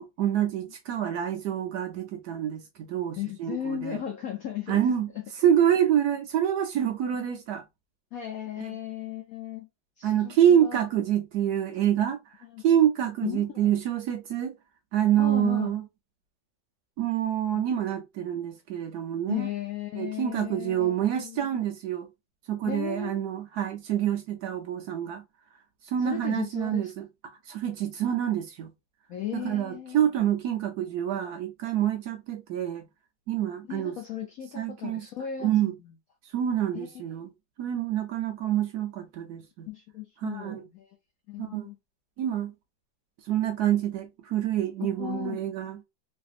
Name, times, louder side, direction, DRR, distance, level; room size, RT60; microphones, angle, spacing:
voice 1, 0.0-4.0 4.7-5.1 5.4-7.6 10.0-12.2 12.6-14.5 14.9-15.8 17.0-19.5 19.9-22.1 22.5-25.2 25.8-27.1 27.5-28.7 29.3-32.8 33.3-34.0 34.5-35.0 35.4-35.7 36.3-37.3 37.6-39.7 40.2-40.6 41.4-41.7 42.2-42.5 43.3-45.8, right 10 dB, 70° right, 1.0 m, -27 dB
voice 2, 3.2-4.8 8.1-9.7 10.0-10.9 12.4-12.6 13.2-13.7 15.2-15.8 17.5-17.7 19.3-21.6 22.7-23.2 26.0-26.9 29.1-30.1 33.6-35.9 36.7-36.9 39.7-40.9 41.3-41.8 44.9-45.4, left 11 dB, 75° left, 0.8 m, -36 dB
3.3 x 2.5 x 2.4 m
omnidirectional pair, 2.0 m